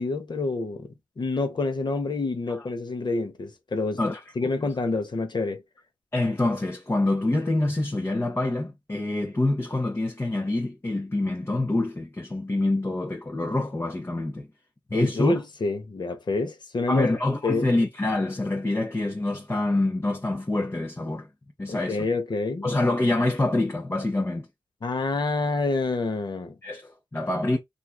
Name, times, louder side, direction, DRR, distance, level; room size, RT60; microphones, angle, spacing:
voice 1, 0.0-5.6 14.9-17.1 17.4-17.7 21.7-22.7 24.8-26.5, left 3 dB, 55° left, 0.9 m, -27 dB
voice 2, 6.1-14.5 14.9-15.3 16.9-21.3 21.6-22.1 22.6-24.5 26.6-27.6, left 2 dB, 25° left, 0.8 m, -26 dB
3.3 x 2.6 x 2.2 m
cardioid pair, 45°, 9 cm